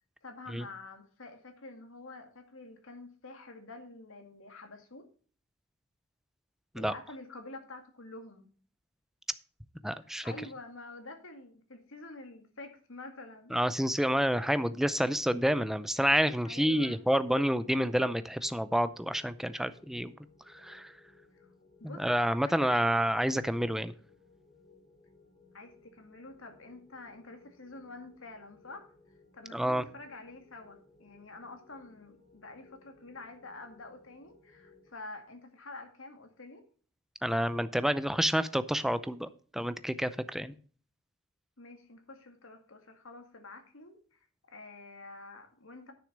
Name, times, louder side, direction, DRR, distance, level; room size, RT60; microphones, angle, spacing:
voice 1, 0.2-5.1 6.7-8.5 10.2-13.5 16.4-17.0 21.3-21.5 21.8-22.0 22.4-22.7 25.5-28.9 29.3-36.6 41.6-44.2 44.5-45.9, left 2 dB, 75° left, 5 dB, 2.1 m, -48 dB
voice 2, 9.8-10.3 13.5-20.1 20.5-20.9 21.8-23.9 29.5-29.8 37.2-40.5, equal, ahead, 13 dB, 0.5 m, -29 dB
sound 1, 17.0-34.9, left 3 dB, 45° left, 5.7 m, -62 dB
10.0 x 6.4 x 5.2 m, 0.43 s
head